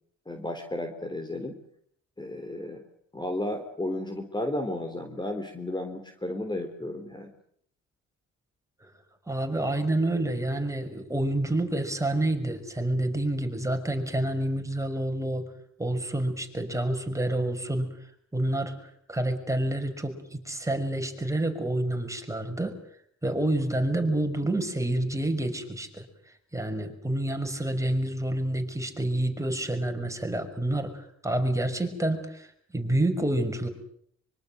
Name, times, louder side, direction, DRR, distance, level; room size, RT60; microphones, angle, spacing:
voice 1, 0.3-1.6 2.2-2.8 3.1-7.3, left 1 dB, 15° left, 6 dB, 3.8 m, -33 dB
voice 2, 9.3-15.5 15.8-17.9 18.3-22.8 23.2-26.1 26.5-32.5 32.7-33.7, right 1 dB, 10° right, 5 dB, 6.1 m, -28 dB
24.5 x 24.5 x 7.9 m, 0.67 s
cardioid pair, 90°, 30 cm